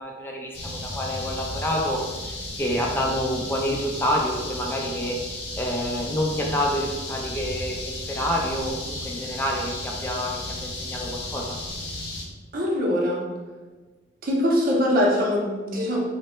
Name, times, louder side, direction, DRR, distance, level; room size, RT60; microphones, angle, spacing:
voice 1, 0.0-11.6, equal, 10° left, -1 dB, 0.4 m, -28 dB
sound 1, 0.5-12.2, left 1 dB, 60° left, 0.6 m, -34 dB
voice 2, 12.5-13.2 14.2-16.0, left 1 dB, 50° right, -2 dB, 0.6 m, -22 dB
3.1 x 2.1 x 3.0 m, 1.3 s
head